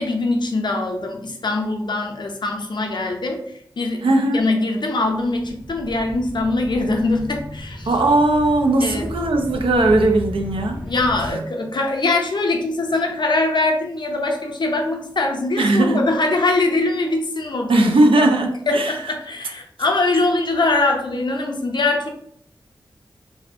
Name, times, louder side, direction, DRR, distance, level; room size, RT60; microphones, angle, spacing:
voice 1, 0.0-3.4 3.8-7.9 8.8-9.0 10.8-18.3 18.7-22.1, left 2 dB, 55° left, 2 dB, 0.5 m, -22 dB
voice 2, 4.0-4.4 7.9-10.8 11.2-11.4 15.6-16.0 17.7-18.9, right 2 dB, 75° right, 3 dB, 0.4 m, -18 dB
sound 1, 5.0-11.3, equal, 15° right, 0.7 m, -34 dB
2.6 x 2.1 x 2.5 m, 0.68 s
cardioid pair, 45°, 9 cm